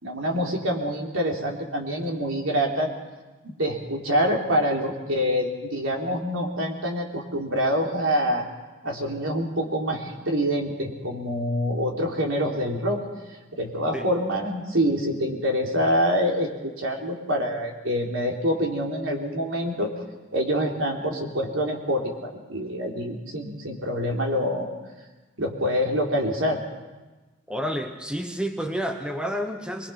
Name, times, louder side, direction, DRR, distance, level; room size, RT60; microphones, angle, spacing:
voice 1, 0.0-2.9 3.4-8.5 8.8-13.0 13.6-19.9 20.3-24.7 25.4-26.6, equal, 85° right, 0 dB, 3.6 m, -26 dB
voice 2, 27.5-29.9, equal, 5° right, 5 dB, 1.1 m, -30 dB
24.5 x 21.5 x 5.9 m, 1.2 s
head